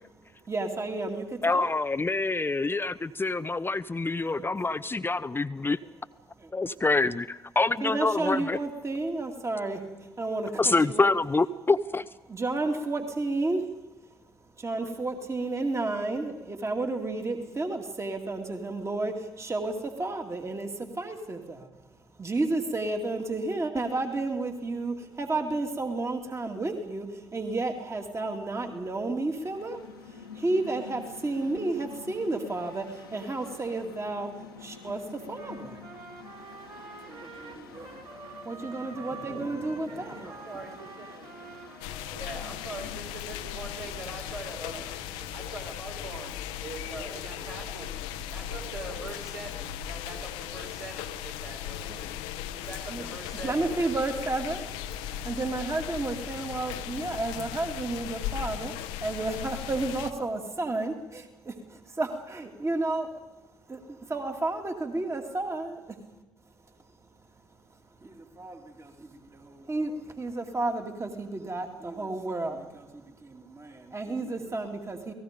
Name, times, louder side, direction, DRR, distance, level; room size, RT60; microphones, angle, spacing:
voice 1, 0.5-1.7 4.3-4.9 6.4-6.5 7.8-11.1 12.3-21.7 22.2-40.3 45.2-45.3 51.9-52.0 52.9-53.0 53.4-54.6 55.0-63.1 63.7-66.0 66.7-66.8 67.9-75.1, right 2 dB, 25° right, 4 dB, 2.5 m, -32 dB
voice 2, 1.4-5.8 6.5-8.6 10.6-12.0, left 3 dB, 20° left, 15 dB, 0.7 m, -26 dB
Mechanical fan, 29.3-44.1, left 5 dB, 90° left, 1.7 m, -48 dB
Trumpet, 35.3-42.7, right 4 dB, 45° right, 3.3 m, -46 dB
voice 3, 38.9-41.1 42.2-44.9 45.3-46.3 46.6-47.9 48.3-52.2 52.4-54.8 55.6-55.8, right 2 dB, 80° right, -2 dB, 5.9 m, -43 dB
sound 1, 41.8-60.1, left 11 dB, 70° left, 1.0 m, -37 dB
29.5 x 18.5 x 5.2 m, 1.1 s
figure-of-eight pair, 50°, 11 cm